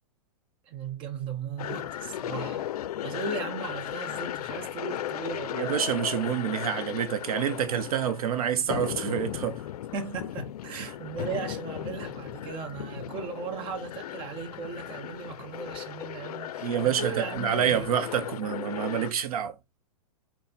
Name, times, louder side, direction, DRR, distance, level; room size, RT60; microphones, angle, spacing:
voice 1, 0.7-2.6 3.0-5.8 9.9-17.9 19.1-19.2, right 5 dB, 25° right, 0.9 m, -37 dB
sound 1, 1.6-19.1, left 12 dB, 80° left, 0.4 m, -36 dB
voice 2, 5.5-9.6 10.7-10.9 16.6-19.5, right 9 dB, 75° right, 0.7 m, -28 dB
4.0 x 2.1 x 4.2 m
hypercardioid pair, 140°, 19 cm